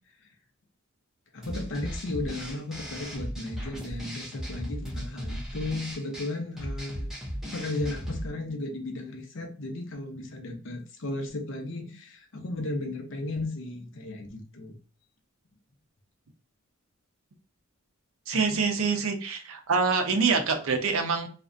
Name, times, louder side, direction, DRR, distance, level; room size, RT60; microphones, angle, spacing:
voice 1, 1.3-7.1 7.5-14.7, left 2 dB, 60° left, 4 dB, 0.6 m, -35 dB
sound 1, 1.4-8.3, equal, ahead, 0.5 m, -37 dB
voice 2, 18.3-21.3, right 5 dB, 75° right, 6 dB, 0.5 m, -25 dB
2.4 x 2.1 x 2.4 m, 0.39 s
head